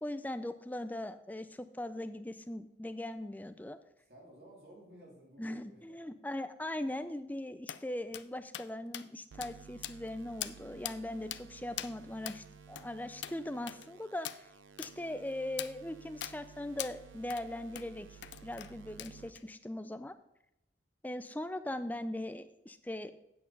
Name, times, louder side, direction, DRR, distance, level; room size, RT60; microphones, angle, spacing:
voice 1, 0.0-3.8 5.4-14.5 14.8-20.1 21.0-23.1, left 1 dB, 10° left, 10 dB, 0.4 m, -40 dB
voice 2, 4.0-6.0 21.7-21.9, right 1 dB, 55° right, -3 dB, 3.4 m, -56 dB
sound 1, 7.7-7.8 8.1-8.3 8.5-8.7 8.9-9.1 9.4-9.5 9.8-10.1 10.4-10.6 10.9-11.0 11.3-11.4 11.8-11.9 12.3-12.4 12.8-12.9 13.2-13.4 13.7-13.9 14.3-14.4 14.8-14.9 15.6-15.7 16.2-16.4 16.8-16.9 17.3-17.5 17.8-17.9 18.2-18.7 19.0-19.4, left 12 dB, 70° left, 0.4 m, -41 dB
sound 2, 9.3-19.3, right 6 dB, 90° right, 0.5 m, -55 dB
8.5 x 6.6 x 5.4 m, 0.83 s
head